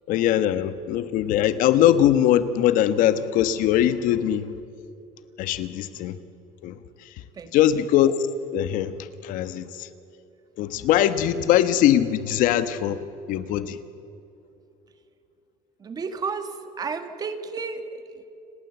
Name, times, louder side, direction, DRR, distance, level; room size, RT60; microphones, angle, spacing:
voice 1, 0.1-4.5 5.4-6.2 6.6-6.8 7.5-8.2 8.5-8.9 9.2-9.9 10.6-13.0 13.3-13.8, left 11 dB, 60° left, 12 dB, 1.2 m, -21 dB
voice 2, 7.3-7.8 15.8-18.3, right 5 dB, 25° right, 9 dB, 1.6 m, -33 dB
30.0 x 19.0 x 8.0 m, 2.8 s
cardioid pair, 160°, 16 cm